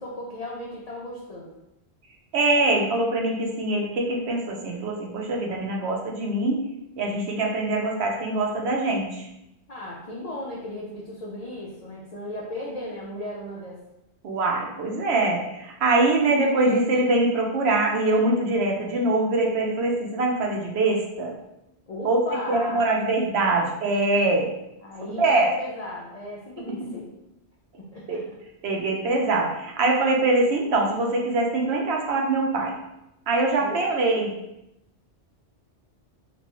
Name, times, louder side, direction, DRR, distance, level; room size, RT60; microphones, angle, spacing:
voice 1, 0.0-1.5 9.7-13.8 21.9-22.9 24.8-27.1 27.8-28.2 33.6-33.8, left 1 dB, 65° left, -4 dB, 0.3 m, -36 dB
voice 2, 2.3-6.6 7.0-9.3 14.2-21.3 22.0-22.2 22.5-24.5 25.2-25.5 28.1-28.2 28.6-32.8 33.3-34.3, right 2 dB, 70° right, 0 dB, 0.8 m, -23 dB
3.0 x 2.2 x 2.8 m, 0.87 s
omnidirectional pair, 1.2 m